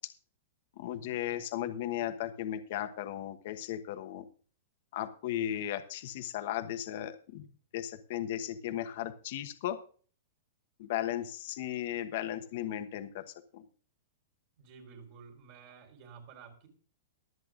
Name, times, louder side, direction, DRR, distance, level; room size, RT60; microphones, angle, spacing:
voice 1, 0.8-4.3 4.9-7.5 7.7-9.8 10.8-13.2 13.5-13.6, left 12 dB, 55° left, 8 dB, 1.1 m, -36 dB
voice 2, 14.6-16.7, right 6 dB, 50° right, 3 dB, 4.3 m, -52 dB
23.0 x 7.8 x 2.5 m, 0.42 s
hypercardioid pair, 150°, 0 cm